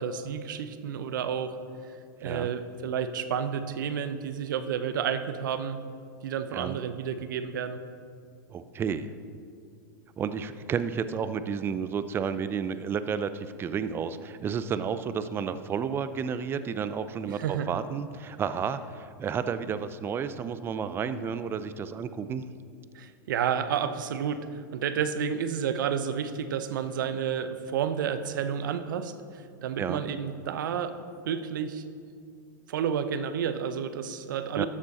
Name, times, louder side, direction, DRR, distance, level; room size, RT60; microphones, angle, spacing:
voice 1, 0.0-1.6 2.2-5.8 6.2-7.8 17.3-17.7 23.0-29.1 29.6-30.9 31.3-31.8 32.7-34.7, right 8 dB, 80° right, 10 dB, 0.7 m, -30 dB
voice 2, 8.5-9.1 10.2-22.4 29.8-30.0 34.6-34.7, right 6 dB, 20° right, 12 dB, 0.4 m, -31 dB
12.5 x 7.4 x 4.2 m, 2.3 s
hypercardioid pair, 125°, 11 cm